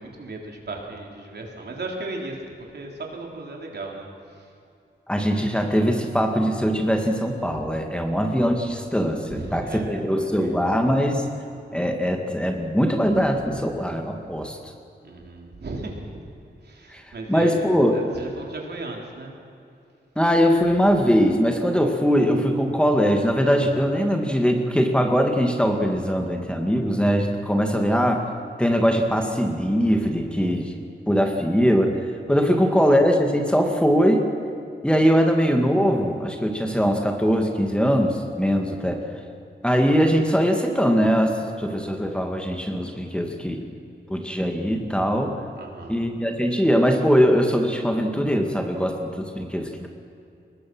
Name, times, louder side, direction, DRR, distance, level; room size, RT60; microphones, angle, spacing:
voice 1, 0.0-4.5 9.3-10.6 15.0-16.2 16.6-17.6 17.9-19.3 32.5-32.8 45.6-46.0, right 2 dB, 65° right, 0 dB, 3.8 m, -36 dB
voice 2, 5.1-11.3 11.7-14.6 16.9-17.0 17.3-18.0 20.2-28.2 28.6-30.7 31.1-32.0 32.3-34.3 34.8-39.0 39.6-43.6 44.1-45.3 45.9-49.9, equal, 5° left, 3 dB, 2.1 m, -21 dB
23.0 x 20.0 x 6.2 m, 2.6 s
wide cardioid pair, 85°, 18 cm